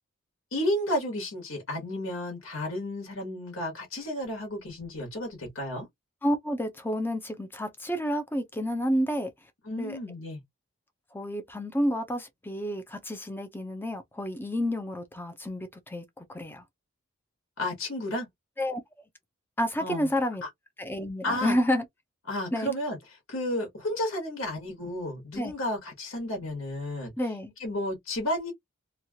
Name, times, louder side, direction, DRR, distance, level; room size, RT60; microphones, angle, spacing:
voice 1, 0.5-5.9 9.6-10.4 17.6-18.3 19.8-20.1 20.4-20.5 21.2-21.5 22.3-27.1 27.6-28.5, left 1 dB, 70° left, 1.2 m, -32 dB
voice 2, 6.2-9.3 9.8-10.0 11.1-16.0 16.3-16.6 18.6-18.8 19.6-20.4 20.8-21.8 22.5-22.7 25.4-25.5 27.2-27.5, equal, 10° left, 0.5 m, -30 dB
2.9 x 2.3 x 2.7 m
head